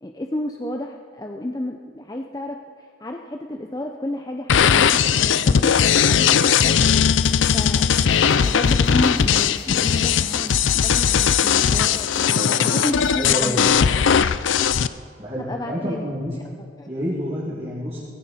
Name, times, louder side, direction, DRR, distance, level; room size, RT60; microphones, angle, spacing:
voice 1, 0.0-7.0 7.5-7.9 8.4-13.8 15.4-16.1 16.5-16.9, left 1 dB, 20° left, 3 dB, 0.6 m, -32 dB
sound 1, 4.5-14.9, left 7 dB, 80° left, 0.5 m, -18 dB
sound 2, 7.2-13.3, left 4 dB, 60° left, 3.8 m, -43 dB
voice 2, 12.3-12.7 13.2-13.7 15.2-16.4 16.9-18.0, equal, 30° right, -7 dB, 2.7 m, -28 dB
18.0 x 16.0 x 4.3 m, 2.2 s
head